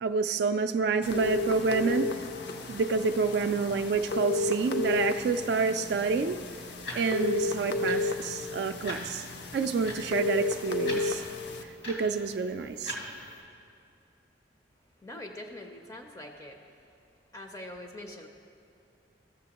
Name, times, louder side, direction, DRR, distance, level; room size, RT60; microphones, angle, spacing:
voice 1, 0.0-2.2 2.7-6.4 6.9-9.2 9.5-11.2 11.9-13.0, right 4 dB, 60° right, 9 dB, 0.3 m, -28 dB
sound 1, 1.0-11.6, left 3 dB, 65° left, 0.6 m, -32 dB
sound 2, 6.3-13.4, left 1 dB, 90° left, 2.2 m, -43 dB
voice 2, 15.0-16.7 17.3-18.3, left 1 dB, 20° left, 3 dB, 0.5 m, -43 dB
14.5 x 6.9 x 2.9 m, 2.5 s
head